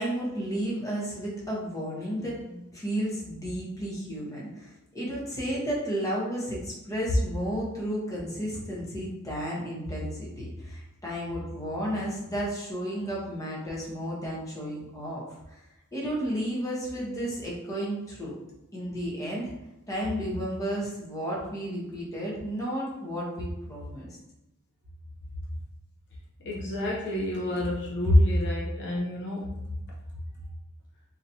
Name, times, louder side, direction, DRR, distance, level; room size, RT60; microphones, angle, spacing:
voice 1, 0.0-15.6 15.9-18.4 18.7-19.5 19.9-24.2, equal, 15° left, -5 dB, 1.1 m, -33 dB
voice 2, 26.4-29.5, left 1 dB, 50° left, -3 dB, 0.6 m, -26 dB
4.1 x 3.0 x 2.8 m, 0.92 s
head